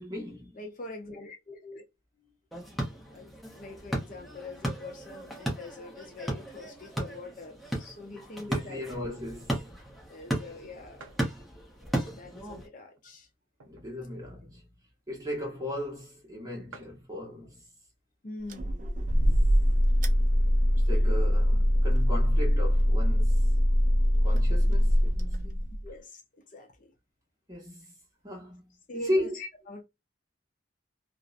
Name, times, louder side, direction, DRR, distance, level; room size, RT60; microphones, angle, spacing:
voice 1, 0.0-0.6 8.4-9.7 13.6-14.7 15.1-17.6 19.1-19.3 20.7-23.6 24.2-25.7 27.5-27.9 28.2-28.6 28.9-29.4, left 1 dB, 15° right, 1.1 m, -36 dB
voice 2, 0.5-1.8 3.1-8.8 10.1-11.1 11.9-13.3 18.2-18.9 25.8-26.9 28.9-29.8, left 2 dB, 40° left, 0.5 m, -44 dB
sound 1, 2.5-12.7, right 1 dB, ahead, 0.7 m, -36 dB
sound 2, 11.0-11.3 12.0-12.1 12.9-14.0 14.4-14.5 14.7-14.9 15.7-15.8 16.0-16.1 16.4-16.5 16.7-17.1 18.0-18.3 18.9-19.0 19.1-19.9, right 3 dB, 80° right, 0.6 m, -52 dB
sound 3, 18.5-25.9, equal, 40° right, 0.4 m, -23 dB
2.5 x 2.1 x 2.4 m
head